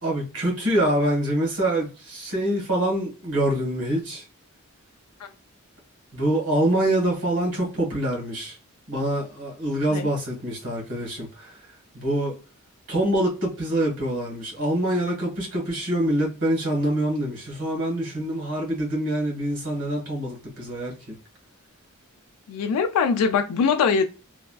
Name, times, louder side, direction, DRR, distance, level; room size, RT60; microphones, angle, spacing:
voice 1, 0.0-4.2 6.1-8.5 8.9-11.5 11.9-12.3 12.9-20.9, right 1 dB, 80° right, 1.5 m, -25 dB
voice 2, 22.5-24.1, left 6 dB, 90° left, 0.3 m, -22 dB
3.2 x 2.3 x 2.2 m
head